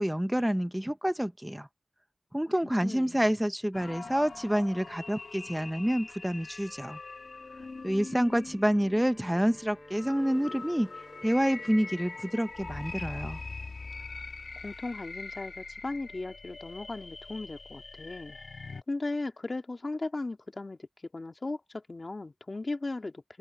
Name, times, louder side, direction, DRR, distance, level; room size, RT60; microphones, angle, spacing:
voice 1, 0.0-1.7 2.3-7.0 7.8-10.9 11.2-13.4, equal, 10° right, 0.6 m, -28 dB
voice 2, 2.6-3.3 14.6-18.4 18.9-20.9 21.1-23.2, left 2 dB, 45° left, 2.1 m, -37 dB
sound 1, 3.7-18.8, left 3 dB, 75° left, 1.5 m, -43 dB
Wind instrument woodwind instrument, 8.6-12.8, left 1 dB, 15° left, 6.8 m, -52 dB
open air
wide cardioid pair, 70°, 0 cm